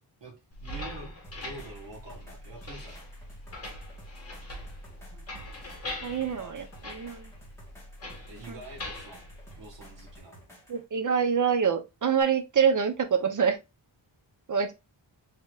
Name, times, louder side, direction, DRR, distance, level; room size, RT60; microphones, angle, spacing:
sound 1, 0.5-10.2, left 1 dB, 35° left, 1.5 m, -42 dB
voice 1, 0.6-3.0 6.4-6.6 8.3-9.3 9.6-10.4, right 2 dB, 70° right, 1.6 m, -46 dB
sound 2, 1.2-10.8 12.2-12.3, right 1 dB, 5° left, 2.0 m, -54 dB
voice 2, 6.0-7.3 8.5-8.6 10.7-13.6 14.5-14.7, right 7 dB, 45° right, 0.7 m, -26 dB
4.6 x 3.7 x 2.3 m
wide cardioid pair, 155°, 44 cm